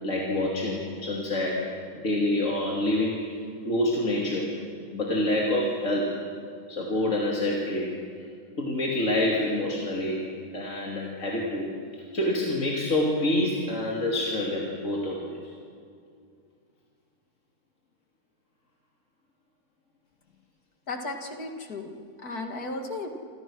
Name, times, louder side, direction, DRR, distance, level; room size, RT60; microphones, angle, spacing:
voice 1, 0.0-1.7 1.9-3.4 3.6-4.5 4.9-6.2 6.7-7.9 8.6-11.7 11.9-15.5, left 1 dB, 55° left, -3 dB, 3.1 m, -27 dB
voice 2, 20.9-23.1, left 2 dB, 85° left, 4 dB, 2.7 m, -35 dB
28.0 x 27.0 x 6.3 m, 2.3 s
omnidirectional pair, 1.6 m